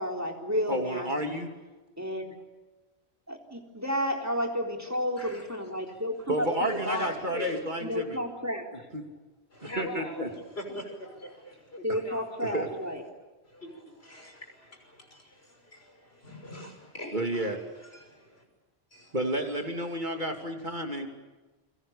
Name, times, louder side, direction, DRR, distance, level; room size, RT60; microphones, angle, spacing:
voice 1, 0.0-1.4 2.0-2.3 3.3-7.1 7.8-8.7 11.8-13.0, equal, 15° right, 3.9 m, -32 dB
voice 2, 0.7-1.5 6.3-8.2 8.9-9.0 9.8-10.3 11.9-12.0 12.5-12.7 17.1-17.6 19.1-21.1, right 1 dB, 45° right, 3.1 m, -30 dB
voice 3, 6.5-7.7 9.5-13.0 13.4-18.4 18.9-19.2 19.8-20.4, left 1 dB, 70° left, 6.4 m, -43 dB
29.5 x 25.0 x 7.0 m
omnidirectional pair, 1.1 m